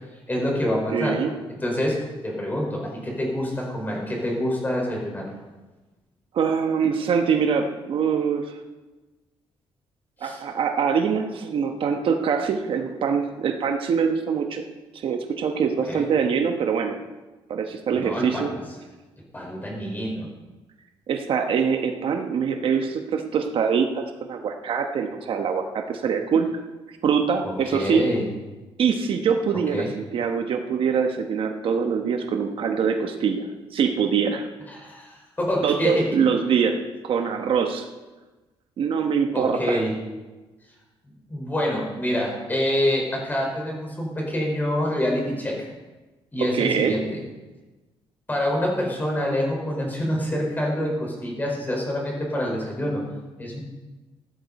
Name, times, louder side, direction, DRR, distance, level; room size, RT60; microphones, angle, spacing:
voice 1, 0.3-1.2 1.6-5.3 10.2-10.4 15.9-16.0 17.9-18.6 19.3-20.3 27.4-28.3 29.7-29.9 34.7-36.1 39.3-39.9 41.3-45.7 46.3-47.2 48.3-53.0 53.4-53.6, left 1 dB, 20° left, -2 dB, 5.0 m, -26 dB
voice 2, 0.9-1.3 6.3-8.5 10.2-14.6 14.9-17.0 17.5-18.5 21.1-26.5 27.0-28.0 28.8-34.5 35.6-37.9 38.8-39.8 46.4-46.9, right 6 dB, 60° right, 5 dB, 1.1 m, -24 dB
15.5 x 13.0 x 4.2 m, 1.2 s
cardioid pair, 125°, 10 cm